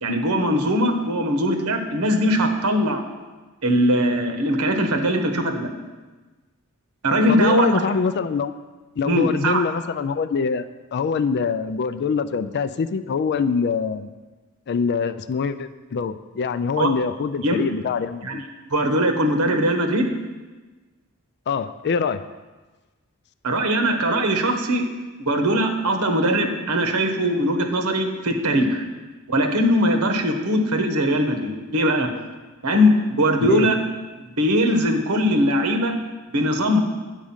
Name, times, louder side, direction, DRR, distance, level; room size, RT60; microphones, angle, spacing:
voice 1, 0.0-3.0 3.6-5.7 7.0-7.8 9.1-9.6 16.8-16.9 17.4-17.6 18.2-18.4 18.7-20.1 23.4-24.8 25.3-28.8 29.3-32.1 32.6-33.8 34.2-35.9 36.3-36.8, equal, 75° right, 5 dB, 1.1 m, -20 dB
voice 2, 7.3-8.5 9.0-10.6 10.9-14.1 14.7-18.4 21.5-22.2 33.4-33.7, left 5 dB, 50° left, 12 dB, 0.4 m, -24 dB
9.3 x 5.0 x 7.2 m, 1.3 s
head